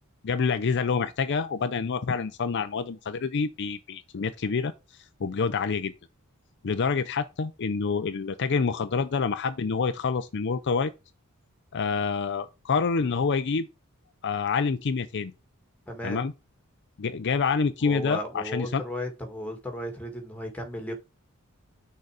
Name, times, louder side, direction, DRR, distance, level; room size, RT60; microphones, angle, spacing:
voice 1, 0.2-4.7 5.2-5.9 6.6-10.9 11.7-13.7 14.2-15.3 16.0-16.3 17.0-18.8, left 5 dB, 50° left, 0.5 m, -27 dB
voice 2, 15.9-16.2 17.8-20.9, left 1 dB, 5° left, 1.9 m, -35 dB
6.5 x 4.0 x 4.9 m
head